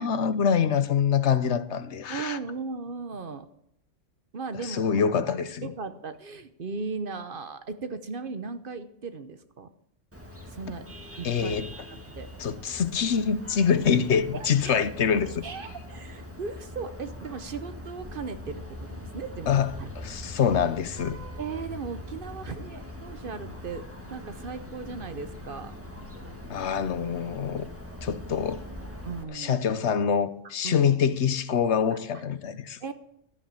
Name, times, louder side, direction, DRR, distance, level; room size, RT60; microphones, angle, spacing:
voice 1, 0.0-2.4 4.6-5.7 11.2-11.7 12.4-15.4 19.5-21.2 26.5-27.7 28.0-28.6 29.3-32.8, left 7 dB, 70° left, 1.1 m, -25 dB
voice 2, 2.1-3.5 4.3-5.3 5.6-9.7 10.5-10.9 11.2-11.6 11.9-12.3 14.3-14.8 15.3-19.5 19.8-19.9 21.4-25.7 29.0-29.6 30.6-31.0 31.9-32.0 32.8-32.9, right 4 dB, 50° right, 1.0 m, -37 dB
Vehicle horn car horn honking, 10.1-29.2, left 1 dB, 10° right, 1.7 m, -42 dB
13.0 x 8.6 x 7.5 m
omnidirectional pair, 1.2 m